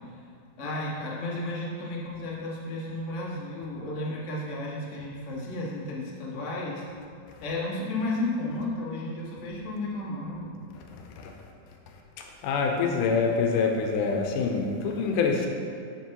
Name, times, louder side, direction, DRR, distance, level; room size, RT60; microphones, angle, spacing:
voice 1, 0.6-6.8 7.4-10.5, left 2 dB, 45° left, -4 dB, 0.9 m, -33 dB
voice 2, 12.2-15.5, left 5 dB, 90° left, 2 dB, 2.3 m, -26 dB
7.4 x 7.0 x 4.7 m, 2.3 s
omnidirectional pair, 3.5 m